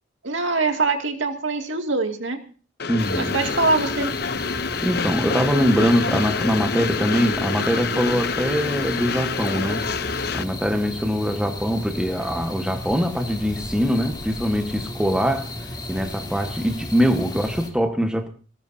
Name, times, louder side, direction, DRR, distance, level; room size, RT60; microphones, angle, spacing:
voice 1, 0.2-2.4 3.2-4.1, right 3 dB, 75° right, 2.4 m, -23 dB
Train, 2.8-10.4, left 5 dB, 55° left, 0.8 m, -27 dB
voice 2, 2.9-3.3 4.8-9.9 10.3-15.5 15.9-18.3, equal, 5° right, 1.4 m, -23 dB
sound 1, 3.0-17.7, left 1 dB, 20° left, 3.1 m, -35 dB
20.5 x 18.5 x 2.8 m
head